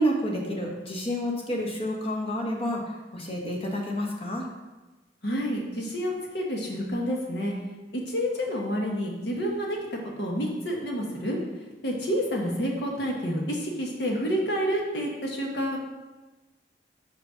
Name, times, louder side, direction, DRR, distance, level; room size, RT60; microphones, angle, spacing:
voice 1, 0.0-4.5, equal, 30° left, 0 dB, 1.2 m, -29 dB
voice 2, 5.2-7.5 7.9-9.8 10.2-11.4 11.8-15.8, equal, 65° left, -1 dB, 1.5 m, -29 dB
5.5 x 5.2 x 5.7 m, 1.2 s
head